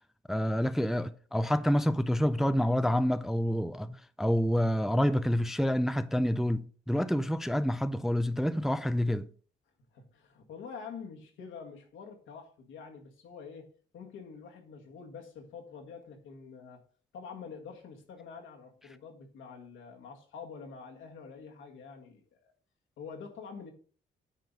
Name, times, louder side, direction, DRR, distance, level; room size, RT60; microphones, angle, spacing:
voice 1, 0.3-9.3, equal, ahead, 0.4 m, -28 dB
voice 2, 9.9-16.8 17.1-22.4 23.0-23.7, left 5 dB, 80° left, 1.8 m, -46 dB
9.1 x 3.9 x 5.4 m
cardioid pair, 90°, 20 cm